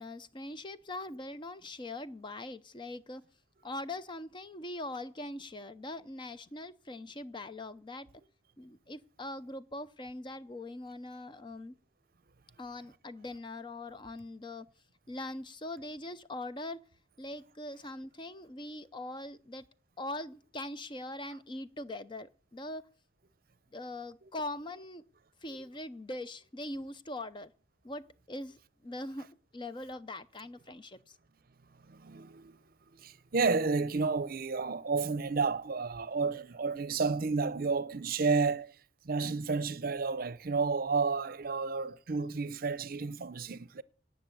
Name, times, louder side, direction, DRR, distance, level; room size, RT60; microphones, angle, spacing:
voice 1, 0.0-3.2 3.6-8.1 8.6-11.8 12.6-14.7 15.1-16.8 17.2-19.6 20.0-22.9 23.7-25.0 25.4-27.5 27.8-29.3 29.5-31.2, left 1 dB, 25° left, 0.6 m, -42 dB
voice 2, 31.9-32.6 32.9-38.8 39.0-43.8, right 4 dB, 50° right, 0.7 m, -31 dB
18.0 x 6.7 x 8.4 m
head